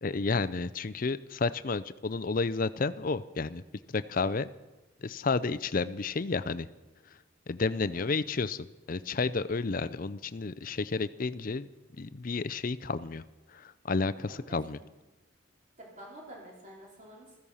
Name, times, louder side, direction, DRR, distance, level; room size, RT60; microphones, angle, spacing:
voice 1, 0.0-3.6 3.9-4.5 5.0-6.7 7.5-11.7 12.0-13.2 13.5-14.8, left 4 dB, 40° left, 15 dB, 0.5 m, -31 dB
voice 2, 7.7-8.1 14.1-14.8 15.8-17.4, right 1 dB, 35° right, -2 dB, 3.6 m, -50 dB
15.0 x 14.5 x 5.6 m, 1.1 s
head